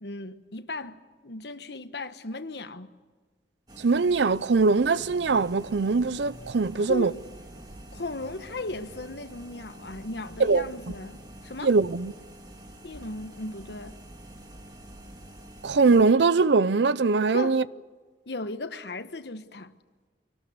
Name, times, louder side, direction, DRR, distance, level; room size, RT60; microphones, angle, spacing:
voice 1, 0.0-2.9 6.8-7.2 7.9-11.7 12.8-14.0 17.3-17.6 18.3-19.7, left 2 dB, 80° left, 1.2 m, -36 dB
sound 1, 3.7-16.1, right 1 dB, 25° right, 1.8 m, -48 dB
voice 2, 3.8-7.1 10.4-10.7 11.6-12.1 15.6-17.6, right 4 dB, 90° right, 0.6 m, -22 dB
sound 2, 4.9-16.0, right 1 dB, 70° right, 2.0 m, -51 dB
25.0 x 19.0 x 8.1 m
head